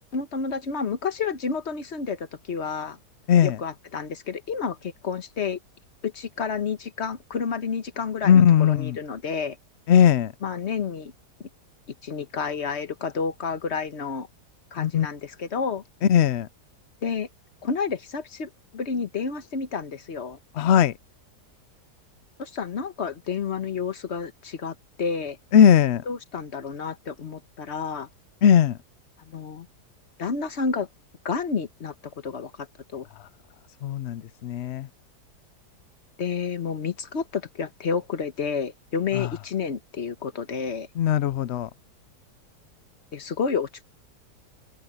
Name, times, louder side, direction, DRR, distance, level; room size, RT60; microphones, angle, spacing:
voice 1, 0.1-3.0 3.4-5.6 6.0-9.6 10.4-11.1 11.4-11.5 12.0-14.3 14.7-15.8 17.0-17.3 17.6-20.4 22.4-25.4 26.1-28.1 29.2-29.7 30.2-30.9 31.2-32.7 32.9-33.1 36.2-40.9 43.1-43.8, left 5 dB, 45° left, 1.4 m, -30 dB
voice 2, 3.3-3.6 8.2-9.0 9.9-10.3 14.8-15.1 16.1-16.5 20.5-20.9 25.5-26.0 28.4-28.8 33.8-34.9 39.1-39.3 41.0-41.7, left 9 dB, 70° left, 0.6 m, -18 dB
omnidirectional pair, 1.8 m